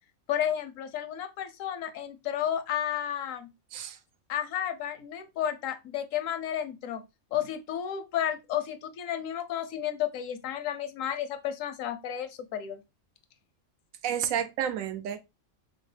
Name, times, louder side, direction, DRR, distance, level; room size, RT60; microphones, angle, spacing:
voice 1, 0.3-3.5 4.3-7.0 7.3-12.8, left 10 dB, 80° left, 1.0 m, -32 dB
voice 2, 14.0-15.2, right 9 dB, 90° right, 1.0 m, -30 dB
5.6 x 2.0 x 3.2 m
omnidirectional pair, 1.4 m